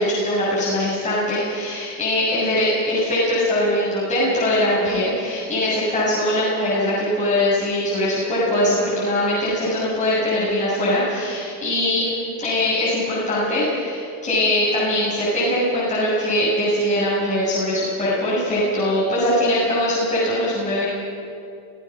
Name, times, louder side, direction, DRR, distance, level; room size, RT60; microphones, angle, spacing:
voice 1, 0.0-12.1 12.4-20.8, left 1 dB, 15° left, -9 dB, 7.2 m, -21 dB
25.5 x 16.5 x 6.2 m, 2.5 s
cardioid pair, 120°, 43 cm